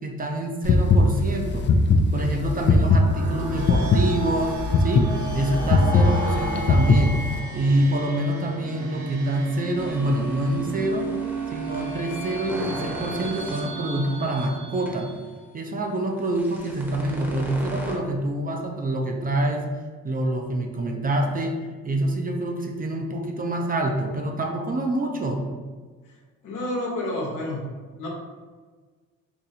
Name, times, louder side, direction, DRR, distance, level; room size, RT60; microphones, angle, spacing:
voice 1, 0.0-1.7 2.1-7.2 7.5-11.1 11.5-15.1 15.5-19.7 20.0-21.6 21.8-25.4, right 1 dB, 30° right, 2 dB, 0.5 m, -26 dB
sound 1, 0.6-7.4, left 3 dB, 40° left, 0.4 m, -19 dB
sound 2, 2.8-15.4, right 3 dB, 70° right, 1.0 m, -33 dB
sound 3, 9.8-13.6 14.2-14.4 14.9-15.0 16.2-17.9, equal, 5° right, 0.9 m, -37 dB
voice 2, 26.4-27.7 28.0-28.1, left 1 dB, 80° left, -2 dB, 1.0 m, -29 dB
2.8 x 2.6 x 4.0 m, 1.4 s
cardioid pair, 90°, 30 cm